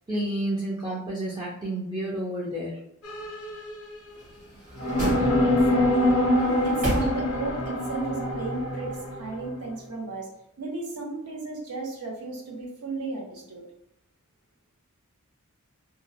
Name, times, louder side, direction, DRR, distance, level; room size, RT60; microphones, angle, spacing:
voice 1, 0.1-2.8, right 1 dB, 20° right, -6 dB, 0.4 m, -30 dB
sound 1, 3.0-4.2 4.8-9.5, left 1 dB, 70° left, 0.5 m, -25 dB
sound 2, 4.1-5.8 6.3-7.6 8.0-8.1, right 1 dB, 35° right, 0.9 m, -32 dB
voice 2, 5.2-10.3 10.6-13.6, right 3 dB, 70° right, -1 dB, 0.7 m, -35 dB
2.5 x 2.0 x 2.6 m, 0.79 s
head